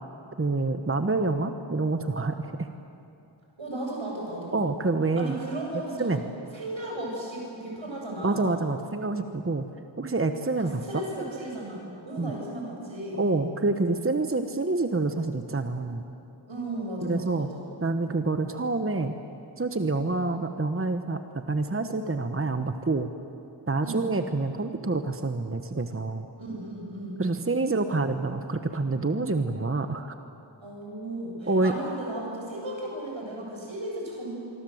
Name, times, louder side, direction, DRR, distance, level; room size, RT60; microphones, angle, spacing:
voice 1, 0.4-2.7 4.5-5.3 6.0-6.2 8.2-9.6 10.0-11.0 12.2-12.3 13.2-16.0 17.0-17.5 17.8-19.2 19.6-23.1 23.7-26.3 27.2-30.1 31.5-31.7, right 3 dB, 30° right, 7 dB, 1.2 m, -27 dB
voice 2, 3.6-4.6 5.2-6.1 6.5-8.6 10.5-13.2 16.5-17.6 23.8-24.2 26.3-27.2 30.6-34.3, right 1 dB, 85° right, -2 dB, 7.7 m, -35 dB
25.5 x 24.5 x 8.0 m, 2.7 s
wide cardioid pair, 65°, 45 cm